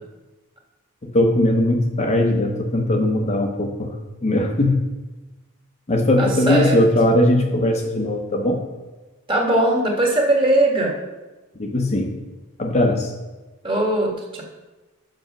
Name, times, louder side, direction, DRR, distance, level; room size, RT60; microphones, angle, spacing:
voice 1, 1.0-4.0 4.2-4.9 5.9-8.6 11.6-12.2 12.6-13.1, left 1 dB, 30° left, 2 dB, 0.7 m, -19 dB
voice 2, 6.2-6.8 9.3-10.9 13.6-14.4, right 1 dB, 25° right, -1 dB, 1.5 m, -20 dB
6.5 x 6.2 x 5.8 m, 1.1 s
head